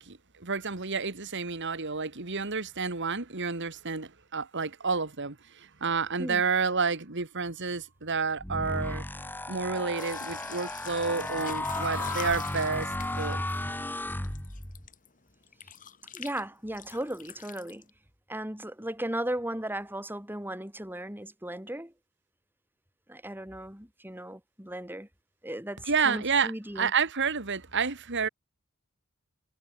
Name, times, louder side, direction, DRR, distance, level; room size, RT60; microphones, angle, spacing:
voice 1, 0.0-9.0 9.5-12.9 13.2-13.4 25.9-28.3, right 5 dB, 55° right, 2.2 m, -30 dB
sound 1, 8.4-14.9, left 1 dB, 10° left, 1.7 m, -34 dB
sound 2, 10.0-15.1 15.4-16.4 16.7-17.9, left 8 dB, 40° left, 2.8 m, -44 dB
voice 2, 16.1-17.9 18.3-21.9 23.1-25.1 25.4-26.9, right 1 dB, 10° right, 6.2 m, -36 dB
head